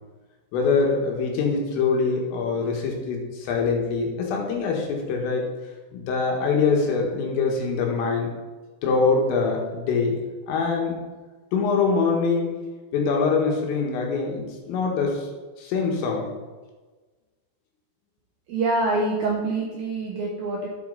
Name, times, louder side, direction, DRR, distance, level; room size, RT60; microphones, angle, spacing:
voice 1, 0.5-5.5 5.9-8.3 8.8-10.2 10.5-11.0 11.5-12.5 12.9-15.3 15.6-16.3, left 4 dB, 85° left, 0 dB, 4.3 m, -24 dB
voice 2, 18.5-20.7, right 2 dB, 75° right, -2 dB, 2.2 m, -25 dB
11.0 x 8.6 x 4.1 m, 1.3 s
omnidirectional pair, 5.7 m